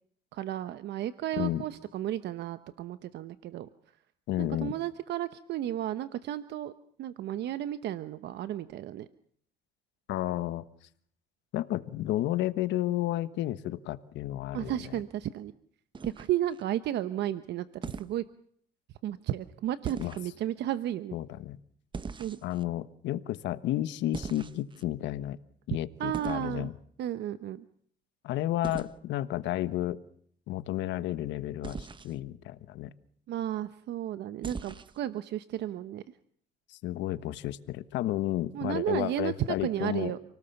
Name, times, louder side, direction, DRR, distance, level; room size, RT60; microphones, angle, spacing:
voice 1, 0.3-3.7 4.4-6.7 7.0-9.1 14.5-15.5 16.0-18.2 19.0-21.1 22.2-22.4 26.0-26.7 27.0-27.6 33.3-36.0 38.5-40.2, right 12 dB, 75° right, 13 dB, 1.0 m, -33 dB
voice 2, 4.3-4.7 10.1-10.6 11.5-15.0 20.0-20.2 21.1-21.6 22.4-25.4 25.7-26.7 28.2-30.0 30.5-32.9 36.7-40.1, left 14 dB, 85° left, 14 dB, 1.3 m, -32 dB
sound 1, 15.9-16.6 17.8-18.2 19.8-20.3 21.9-22.6 24.1-24.8 26.1-26.5 28.6-28.9 31.6-32.1 34.4-35.0, right 4 dB, 25° right, 1.1 m, -40 dB
28.5 x 18.5 x 7.1 m, 0.63 s
cardioid pair, 120°, 18 cm